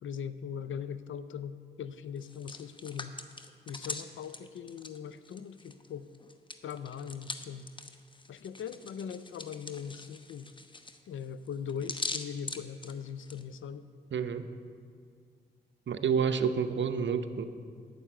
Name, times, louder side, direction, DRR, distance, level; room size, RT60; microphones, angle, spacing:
voice 1, 0.0-3.2 3.7-6.1 6.6-7.7 8.3-10.5 11.1-13.9, left 7 dB, 85° left, 13 dB, 0.5 m, -40 dB
Hands, 2.2-5.9 6.1-13.4, left 2 dB, 25° left, 0.8 m, -42 dB
voice 2, 14.1-14.5 15.9-17.5, right 6 dB, 70° right, 9 dB, 0.7 m, -29 dB
9.2 x 6.9 x 8.8 m, 2.1 s
cardioid pair, 50°, 20 cm